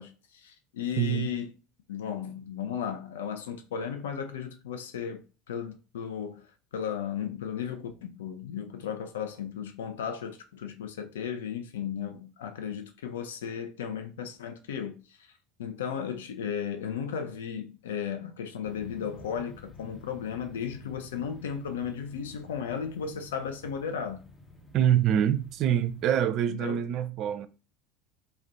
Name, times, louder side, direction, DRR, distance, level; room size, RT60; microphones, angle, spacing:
voice 1, 0.0-1.5 1.9-5.2 5.5-6.5 6.7-15.3 15.6-24.2 26.5-26.8, left 7 dB, 75° left, 0.4 m, -35 dB
voice 2, 1.0-1.3 24.7-27.5, right 10 dB, 50° right, 0.3 m, -25 dB
sound 1, 18.6-26.2, left 2 dB, 20° left, 0.6 m, -51 dB
2.4 x 2.0 x 3.8 m
hypercardioid pair, 70°, 0 cm